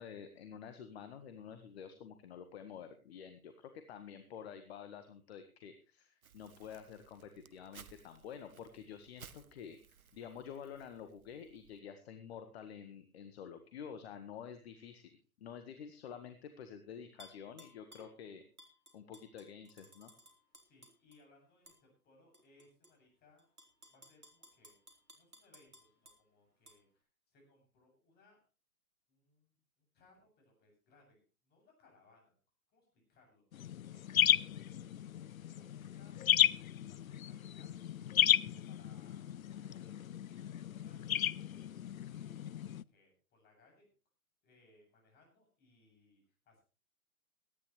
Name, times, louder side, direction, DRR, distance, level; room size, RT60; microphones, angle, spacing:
voice 1, 0.0-9.8 10.1-18.4 18.9-20.1, left 7 dB, 45° left, 9 dB, 1.7 m, -49 dB
Crumpling crinkling, 6.2-11.8, right 6 dB, 75° right, 1.3 m, -60 dB
Tap / Glass, 17.2-18.1 18.6-21.2 21.7-21.8 22.3-22.9 23.4-26.2 26.7-26.8, equal, 90° right, 4.2 m, -59 dB
voice 2, 20.6-23.5 23.9-24.8 25.1-28.4 29.1-32.3 32.7-33.4 33.9-36.3 36.6-37.9 38.7-41.8 42.1-43.9 44.4-46.6, left 2 dB, 20° left, 1 dB, 7.8 m, -68 dB
sound 1, 33.5-42.8, left 10 dB, 70° left, 0.6 m, -33 dB
18.5 x 13.5 x 3.3 m, 0.33 s
figure-of-eight pair, 120°, 43 cm